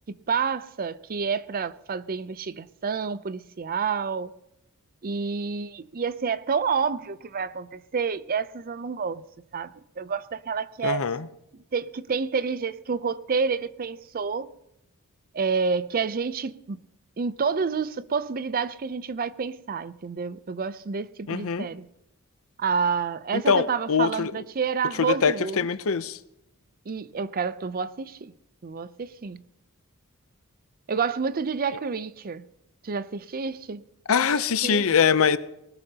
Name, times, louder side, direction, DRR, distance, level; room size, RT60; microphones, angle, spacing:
voice 1, 0.1-4.3 5.0-9.2 9.5-11.0 11.7-14.5 15.3-16.8 17.2-21.9 22.6-25.7 26.9-28.3 28.6-29.4 30.9-32.4 32.8-33.8 34.6-34.8, right 5 dB, 40° right, 0.5 m, -29 dB
voice 2, 10.8-11.3 21.3-21.7 23.3-24.3 25.0-26.2 34.1-35.4, left 6 dB, 65° left, 0.6 m, -23 dB
20.0 x 18.5 x 2.9 m
head